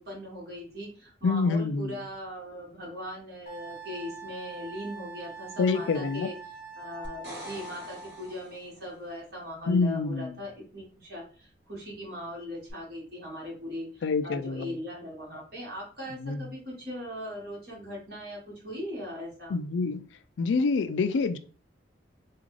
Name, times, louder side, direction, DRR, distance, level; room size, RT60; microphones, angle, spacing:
voice 1, 0.0-6.4 6.8-19.6, left 1 dB, 55° right, 1.8 m, -39 dB
voice 2, 1.2-1.9 5.6-6.3 9.7-10.4 14.0-14.7 16.2-16.5 19.5-20.0 20.4-21.4, left 4 dB, 80° left, 0.4 m, -26 dB
Wind instrument woodwind instrument, 3.5-8.3, right 4 dB, 45° left, 0.7 m, -44 dB
sound 1, 7.0-9.0 12.7-12.8, equal, 70° right, 1.7 m, -45 dB
3.7 x 2.4 x 3.2 m
head